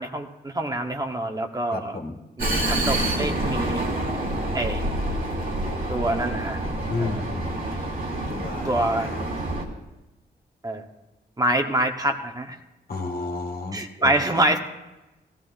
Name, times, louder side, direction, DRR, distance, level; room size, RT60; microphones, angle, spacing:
voice 1, 0.0-2.0 2.4-3.8 4.5-4.8 5.9-6.6 7.0-7.2 8.6-9.1 10.6-10.8 11.4-12.6 13.7-14.6, right 1 dB, 20° right, 3 dB, 1.1 m, -26 dB
voice 2, 1.7-2.2 6.9-7.6 8.3-9.2 12.9-14.2, left 3 dB, 60° left, 2 dB, 1.9 m, -32 dB
Vehicle, 2.4-9.6, right 1 dB, 55° right, 2.3 m, -27 dB
17.5 x 14.5 x 2.6 m, 1.0 s
cardioid pair, 70°, 18 cm